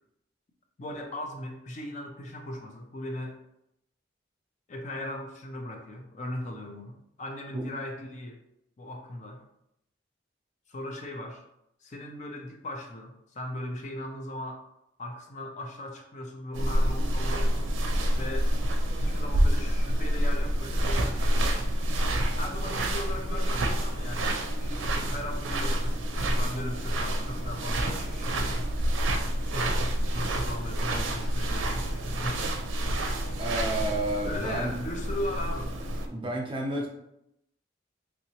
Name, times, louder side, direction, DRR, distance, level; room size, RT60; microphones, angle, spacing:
voice 1, 0.8-3.4 4.7-8.4 8.8-9.4 10.7-11.4 11.8-14.6 15.0-17.7 18.2-18.5 18.9-21.5 22.4-28.7 29.5-32.5 34.2-35.7, left 1 dB, 40° left, 3 dB, 0.4 m, -38 dB
sound 1, 16.5-36.1, right 1 dB, 80° right, 0.5 m, -28 dB
voice 2, 33.4-34.7 36.1-36.9, right 1 dB, 25° right, -1 dB, 0.6 m, -30 dB
3.1 x 2.8 x 2.9 m, 0.80 s
head